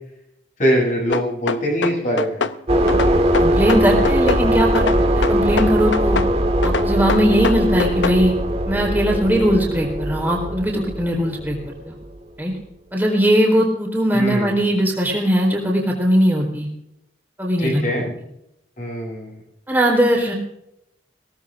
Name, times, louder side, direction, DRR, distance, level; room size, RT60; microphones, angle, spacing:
voice 1, 0.6-2.4 14.1-14.5 17.6-18.0 18.8-19.4, equal, 45° left, -2 dB, 7.8 m, -22 dB
sound 1, 1.1-2.6 2.9-4.4 4.7-6.3 6.6-8.2, left 5 dB, 90° left, 0.6 m, -24 dB
sound 2, 2.7-12.2, right 1 dB, 35° right, 1.9 m, -20 dB
voice 2, 3.4-6.2 6.6-8.3 8.6-11.6 11.8-12.0 12.4-12.5 12.9-16.7 17.4-18.0 19.7-20.3, equal, 10° right, -1 dB, 4.1 m, -19 dB
23.0 x 18.0 x 2.6 m, 0.82 s
head